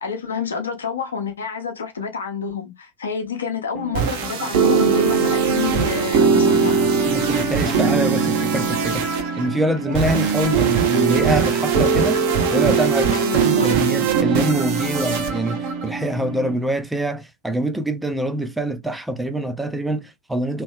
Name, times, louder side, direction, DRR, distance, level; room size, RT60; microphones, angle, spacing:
voice 1, 0.0-6.8 13.1-13.7, left 6 dB, 70° left, 0.8 m, -28 dB
sound 1, 3.7-16.5, right 6 dB, 50° right, 0.9 m, -20 dB
voice 2, 7.1-9.0 9.4-12.2 12.5-20.6, right 1 dB, 5° right, 0.6 m, -25 dB
3.0 x 3.0 x 3.2 m
figure-of-eight pair, 90°, 0 cm